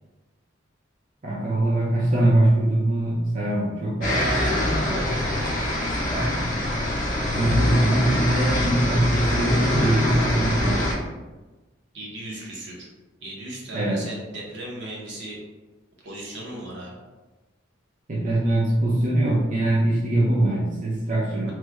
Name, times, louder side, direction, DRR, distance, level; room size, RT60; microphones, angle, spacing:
voice 1, 1.2-4.4 4.7-5.0 6.1-6.5 7.3-10.8 13.7-14.0 18.1-21.5, right 1 dB, 40° right, -6 dB, 0.5 m, -22 dB
sound 1, 4.0-10.9, left 1 dB, 45° left, 0.8 m, -24 dB
voice 2, 4.1-4.8 5.9-6.0 11.9-12.9 13.2-15.4 16.0-17.0, right 1 dB, 65° right, -3 dB, 0.9 m, -37 dB
3.2 x 2.2 x 3.3 m, 1.2 s
head